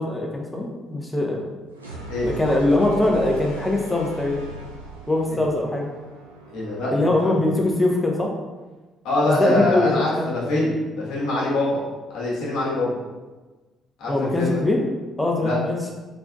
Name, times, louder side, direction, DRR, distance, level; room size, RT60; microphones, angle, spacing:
voice 1, 0.0-1.4 2.2-4.4 5.1-5.9 6.9-8.3 9.2-10.3 14.1-14.8 15.2-15.8, left 2 dB, 15° left, 0 dB, 0.7 m, -22 dB
sound 1, 1.7-7.6, right 2 dB, 85° right, 0.4 m, -39 dB
voice 2, 6.5-6.9 7.2-7.3 9.0-11.8 12.1-12.9 14.0-14.7 15.4-15.6, left 2 dB, 60° left, -6 dB, 1.2 m, -24 dB
3.9 x 3.4 x 2.3 m, 1.2 s
figure-of-eight pair, 45°, 0 cm